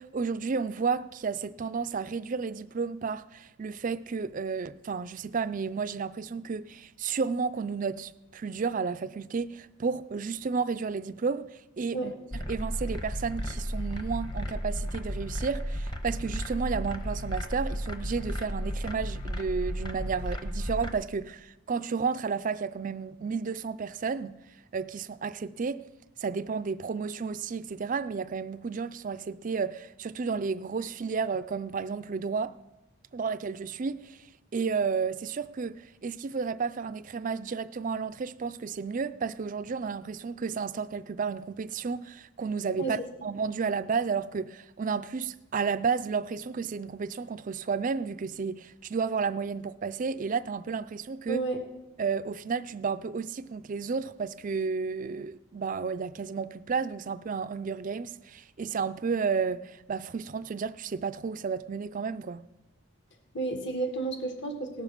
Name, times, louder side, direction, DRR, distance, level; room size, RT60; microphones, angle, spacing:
voice 1, 0.0-12.1 12.5-24.4 24.7-25.8 26.2-32.5 33.1-34.2 34.5-51.4 52.0-62.4, right 5 dB, 40° right, 0.4 m, -32 dB
sound 1, 12.3-20.9, equal, 20° left, 1.0 m, -34 dB
voice 2, 51.3-51.6 63.3-64.8, right 3 dB, 55° left, 1.7 m, -31 dB
17.5 x 7.1 x 6.9 m
head